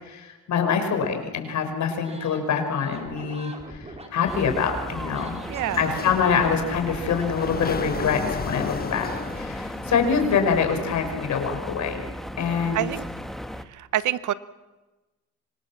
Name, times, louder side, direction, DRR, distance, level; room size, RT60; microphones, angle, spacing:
voice 1, 0.0-5.4 5.8-9.1 9.3-12.0 12.4-12.9, left 6 dB, 70° left, 5 dB, 5.5 m, -25 dB
sound 1, 2.0-2.4 2.8-8.6, right 2 dB, 20° right, 5.2 m, -42 dB
sound 2, 4.3-13.6, equal, ahead, 1.5 m, -36 dB
voice 2, 5.5-6.0 12.7-13.1 13.7-14.3, right 12 dB, 75° right, 16 dB, 1.0 m, -27 dB
Sliding door, 5.6-10.6, left 5 dB, 30° left, 1.4 m, -34 dB
25.5 x 25.5 x 7.4 m, 1.1 s
cardioid pair, 90°, 30 cm